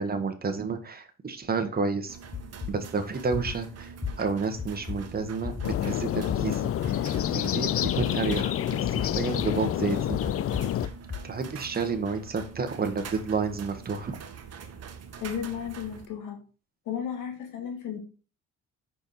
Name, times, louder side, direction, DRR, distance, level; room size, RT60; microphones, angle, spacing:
voice 1, 0.0-2.2 2.7-7.0 7.3-10.2 11.2-14.2, right 4 dB, 30° right, 7 dB, 1.1 m, -30 dB
sound 1, 2.1-16.1, right 6 dB, 55° right, 1.0 m, -44 dB
sound 2, 2.3-2.7 3.3-3.6 4.0-4.1 4.6-5.0 5.4-5.8 6.3-6.4 6.8-7.2 7.8-8.4 8.8-9.5 10.1-11.2, left 7 dB, 20° left, 0.7 m, -33 dB
sound 3, 5.6-10.9, left 11 dB, 50° left, 0.4 m, -28 dB
voice 2, 15.2-16.4 16.9-18.0, left 8 dB, 90° left, 3 dB, 1.9 m, -34 dB
5.2 x 4.5 x 4.2 m, 0.36 s
cardioid pair, 90°, 30 cm